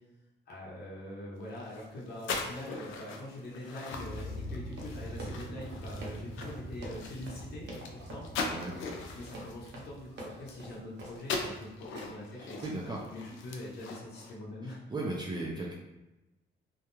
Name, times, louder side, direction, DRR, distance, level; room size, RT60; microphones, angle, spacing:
voice 1, 0.5-8.2 9.1-11.7 11.9-14.8, left 1 dB, 55° left, -5 dB, 0.9 m, -43 dB
sound 1, 1.5-10.9 11.2-14.3, left 4 dB, 75° left, 0.5 m, -41 dB
sound 2, 3.9-10.6, equal, 25° left, 0.6 m, -44 dB
Run, 4.7-11.6 12.0-12.3 12.6-13.0, right 1 dB, 60° right, 0.8 m, -46 dB
voice 2, 12.4-13.0 14.9-15.7, right 2 dB, 20° right, -3 dB, 0.5 m, -36 dB
2.4 x 2.1 x 3.0 m, 1.0 s
cardioid pair, 90°, 20 cm